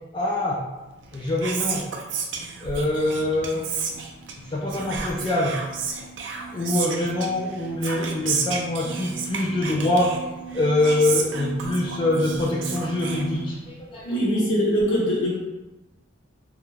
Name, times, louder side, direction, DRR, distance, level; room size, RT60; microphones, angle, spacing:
voice 1, 0.1-0.6 1.1-1.8 2.6-3.7 4.5-5.6 6.5-10.1 10.5-14.0, left 1 dB, 25° left, -4 dB, 0.3 m, -24 dB
Whispering, 1.0-13.8, right 5 dB, 70° right, 0.4 m, -32 dB
sound 1, 3.9-13.3, right 4 dB, 40° left, 0.7 m, -40 dB
voice 2, 14.0-15.4, equal, 85° left, -5 dB, 0.9 m, -22 dB
2.4 x 2.1 x 3.1 m, 1.0 s
head